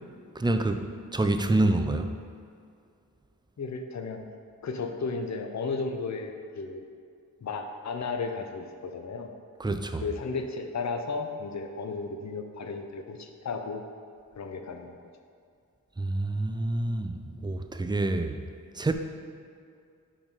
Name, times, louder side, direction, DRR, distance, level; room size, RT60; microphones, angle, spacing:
voice 1, 0.4-0.8 1.1-2.1 9.6-10.0 16.0-18.4 18.7-18.9, right 2 dB, 15° right, 7 dB, 0.3 m, -27 dB
voice 2, 3.6-4.2 4.6-6.8 7.4-9.3 10.0-13.8 14.3-15.0, left 4 dB, 50° left, 5 dB, 0.5 m, -34 dB
5.0 x 3.5 x 5.4 m, 2.3 s
wide cardioid pair, 50°, 37 cm